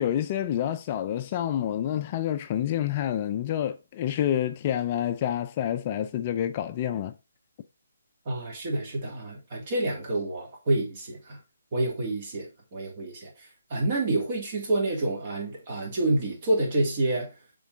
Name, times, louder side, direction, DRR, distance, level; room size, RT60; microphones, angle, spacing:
voice 1, 0.0-7.1, left 10 dB, 30° left, 0.5 m, -28 dB
voice 2, 8.3-11.4 11.7-17.3, right 2 dB, 40° right, 2.5 m, -28 dB
6.9 x 3.9 x 3.8 m
figure-of-eight pair, 150°, 0 cm